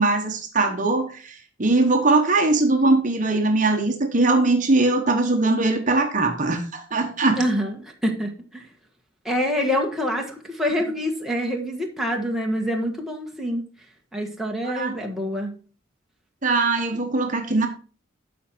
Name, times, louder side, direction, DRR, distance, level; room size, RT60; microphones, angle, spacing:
voice 1, 0.0-7.4 14.6-15.0 16.4-17.7, right 2 dB, 40° right, 4 dB, 1.1 m, -21 dB
voice 2, 7.4-7.7 8.0-8.6 9.2-13.6 14.1-15.5, equal, ahead, 0 dB, 1.5 m, -26 dB
12.5 x 5.1 x 4.4 m, 0.38 s
head